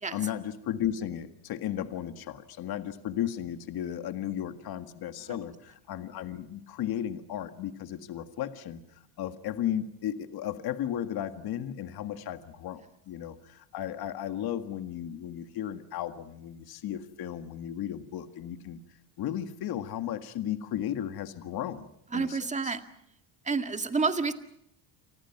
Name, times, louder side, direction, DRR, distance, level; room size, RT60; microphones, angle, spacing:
voice 1, 0.1-8.8 9.2-18.8 19.2-22.7, left 11 dB, 50° left, 9 dB, 1.9 m, -35 dB
voice 2, 22.1-22.8 23.4-24.3, right 4 dB, 15° right, 8 dB, 2.0 m, -29 dB
29.5 x 26.0 x 6.0 m, 0.77 s
cardioid pair, 130°, 46 cm